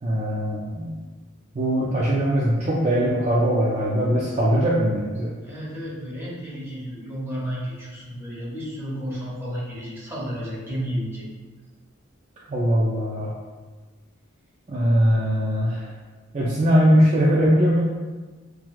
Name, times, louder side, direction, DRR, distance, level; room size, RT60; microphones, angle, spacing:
voice 1, 0.0-0.9 1.5-5.3 12.5-13.3 14.7-15.9 16.3-17.8, equal, 35° right, -6 dB, 0.4 m, -21 dB
voice 2, 5.4-11.3, equal, 10° right, -7 dB, 0.9 m, -32 dB
5.8 x 2.3 x 2.3 m, 1.3 s
head